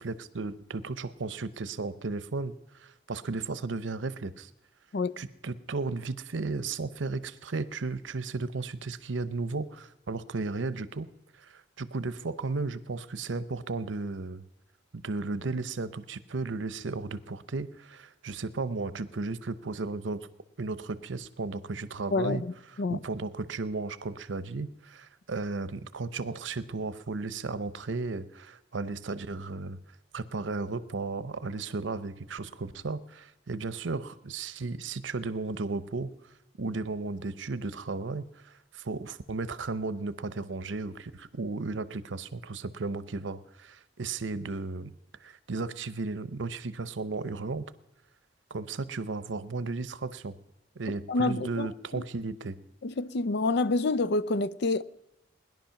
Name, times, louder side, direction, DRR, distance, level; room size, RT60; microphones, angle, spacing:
voice 1, 0.0-4.5 5.2-14.4 14.9-20.3 20.6-22.4 22.9-29.8 30.1-36.2 36.6-44.9 45.2-47.7 48.5-50.4 50.8-52.6, right 3 dB, 90° right, 0.8 m, -34 dB
voice 2, 22.1-23.0 51.1-52.0 52.8-54.8, left 3 dB, 65° left, 0.5 m, -28 dB
20.0 x 11.0 x 5.8 m
head